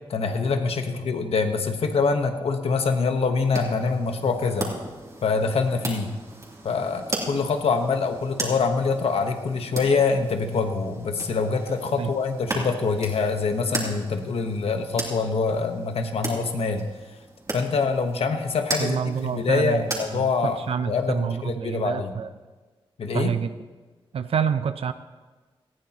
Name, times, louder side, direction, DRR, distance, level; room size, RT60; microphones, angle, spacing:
voice 1, 0.1-4.7 5.2-6.1 6.6-16.9 17.5-22.1 23.0-23.3, left 4 dB, 90° left, 6 dB, 1.2 m, -25 dB
sound 1, 3.3-20.7, right 2 dB, 35° right, 2.9 m, -37 dB
voice 2, 18.8-19.8 20.1-22.3 23.1-23.5 24.1-24.9, right 7 dB, 85° right, 11 dB, 0.5 m, -27 dB
19.0 x 14.5 x 3.0 m, 1.3 s
wide cardioid pair, 105°, 10 cm